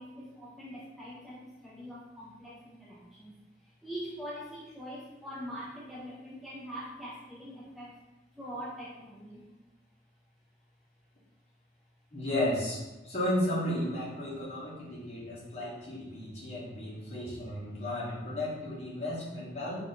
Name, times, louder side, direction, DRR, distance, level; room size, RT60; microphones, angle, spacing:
voice 1, 0.0-3.3 3.8-7.9 8.4-9.4, equal, ahead, -6 dB, 0.4 m, -43 dB
voice 2, 12.1-19.8, left 1 dB, 35° left, -7 dB, 1.2 m, -34 dB
3.6 x 2.5 x 4.1 m, 1.1 s
head